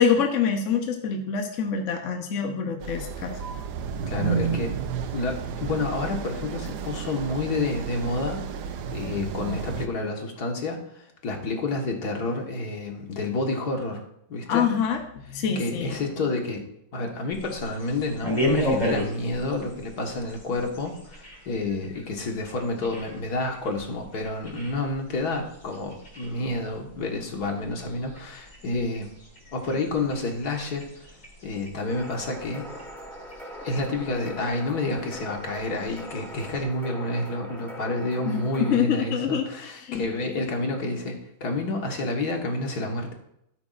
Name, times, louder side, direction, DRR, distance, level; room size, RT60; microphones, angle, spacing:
voice 1, 0.0-3.4 14.5-15.0 15.3-16.0 38.3-38.4 38.7-40.0, left 7 dB, 55° left, 4 dB, 1.2 m, -25 dB
sound 1, 2.8-9.9, right 6 dB, 90° right, 1.3 m, -32 dB
voice 2, 4.0-4.7 5.1-8.4 8.9-14.0 14.3-14.7 15.6-16.6 16.9-29.1 29.5-30.9 31.4-32.7 33.6-43.1, left 2 dB, 70° left, 2 dB, 2.1 m, -29 dB
sound 2, 17.3-36.6, left 1 dB, 25° left, 3.4 m, -36 dB
sound 3, 31.9-38.8, equal, ahead, 3.7 m, -41 dB
12.5 x 9.6 x 2.5 m, 0.76 s
omnidirectional pair, 1.7 m